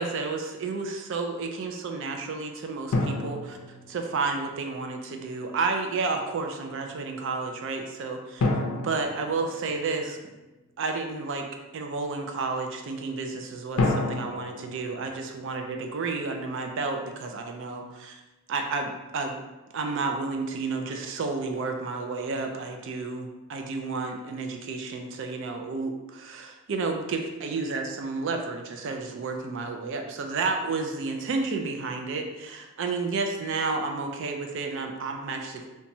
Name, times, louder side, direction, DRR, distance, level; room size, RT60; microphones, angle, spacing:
voice 1, 0.0-3.6 3.9-8.4 8.7-10.2 10.8-11.5 11.7-18.2 18.5-19.4 19.7-35.7, right 4 dB, 60° right, 4 dB, 0.4 m, -31 dB
sound 1, 2.9-4.5 8.4-10.3 13.8-16.0, left 2 dB, 80° left, 0.4 m, -30 dB
2.9 x 2.2 x 2.6 m, 1.1 s
head